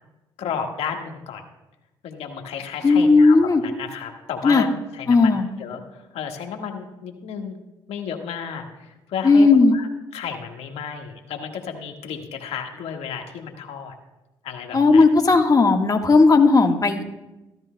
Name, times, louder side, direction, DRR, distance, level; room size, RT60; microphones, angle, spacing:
voice 1, 0.4-1.4 2.0-4.7 4.9-7.6 7.9-9.9 10.1-13.9 14.4-15.0, left 7 dB, 70° left, 3 dB, 1.6 m, -33 dB
voice 2, 2.8-3.6 4.4-4.7 5.1-5.5 9.2-9.8 14.7-17.0, left 3 dB, 35° left, 4 dB, 1.5 m, -15 dB
14.0 x 13.5 x 2.2 m, 1.0 s
hypercardioid pair, 50°, 11 cm